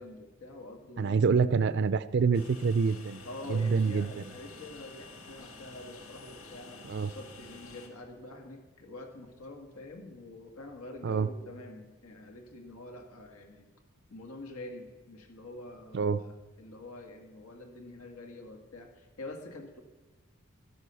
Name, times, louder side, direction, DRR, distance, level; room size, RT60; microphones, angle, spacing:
voice 1, 0.0-1.2 3.2-13.7 14.1-19.8, left 2 dB, 85° left, 5 dB, 1.8 m, -46 dB
voice 2, 1.0-3.2 3.5-4.1 6.9-7.1 11.0-11.3 15.9-16.2, right 5 dB, 50° right, 15 dB, 0.4 m, -26 dB
Train, 2.3-7.9, left 3 dB, 70° left, 1.8 m, -50 dB
13.0 x 11.0 x 6.9 m, 1.2 s
head